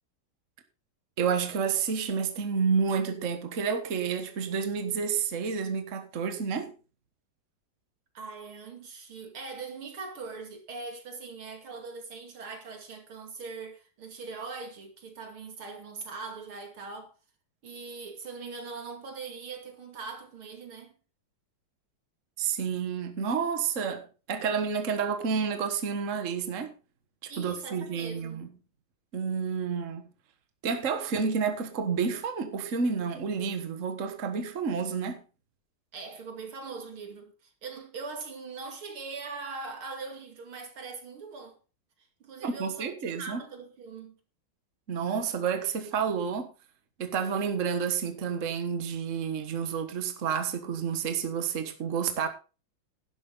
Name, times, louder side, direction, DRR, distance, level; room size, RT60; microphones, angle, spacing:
voice 1, 1.2-6.7 22.4-26.7 27.2-28.5 29.1-30.1 30.6-35.2 42.4-43.4 44.9-46.5 47.0-52.3, right 6 dB, 40° right, 1.7 m, -30 dB
voice 2, 8.1-17.1 17.6-20.9 27.3-28.5 35.9-41.6 42.2-44.1, right 4 dB, 80° right, 3.3 m, -41 dB
12.0 x 11.0 x 4.0 m
omnidirectional pair, 2.3 m